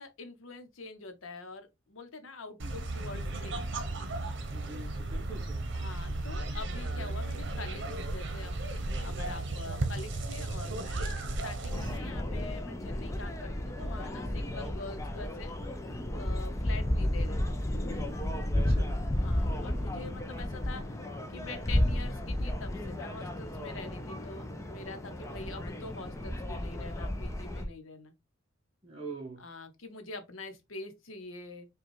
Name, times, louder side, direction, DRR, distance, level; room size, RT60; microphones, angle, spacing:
voice 1, 0.0-3.6 5.7-8.6 9.0-15.5 15.8-17.6 18.5-18.8 19.1-21.0 21.3-28.1 29.4-31.7, left 3 dB, 90° left, 0.8 m, -45 dB
sound 1, 2.6-12.0, right 2 dB, 65° right, 0.8 m, -35 dB
voice 2, 4.5-5.6 18.5-18.9 28.8-29.4, right 3 dB, 30° right, 0.7 m, -44 dB
sound 2, 11.7-27.7, left 1 dB, 15° left, 0.5 m, -33 dB
5.2 x 2.3 x 3.0 m
head